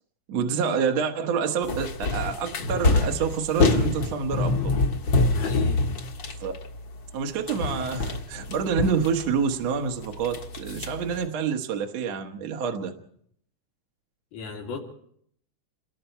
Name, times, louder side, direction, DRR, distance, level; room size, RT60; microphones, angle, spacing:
voice 1, 0.3-4.7 6.4-6.5 7.1-12.9, right 6 dB, 65° right, 3 dB, 2.4 m, -27 dB
sound 1, 1.6-7.2 7.5-9.6 10.0-11.3, left 3 dB, 50° left, 1.6 m, -26 dB
voice 2, 5.3-5.8 14.3-14.8, left 5 dB, 90° left, -1 dB, 4.3 m, -35 dB
28.0 x 20.5 x 4.5 m, 0.67 s
omnidirectional pair, 3.5 m